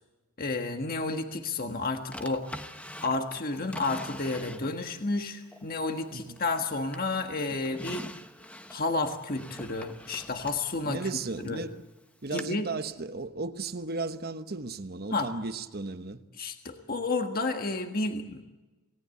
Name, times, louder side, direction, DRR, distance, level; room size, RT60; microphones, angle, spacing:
voice 1, 0.4-2.5 3.0-8.1 8.7-11.0 11.4-11.6 12.3-12.7 15.1-15.3 16.4-18.5, left 3 dB, 40° left, 1.6 m, -31 dB
Drawer open or close, 2.1-5.0 5.5-6.6 6.9-11.6 12.4-12.5, left 1 dB, 5° left, 0.9 m, -44 dB
voice 2, 10.8-11.8 12.2-16.2, right 3 dB, 45° right, 1.0 m, -35 dB
28.0 x 18.5 x 8.4 m
head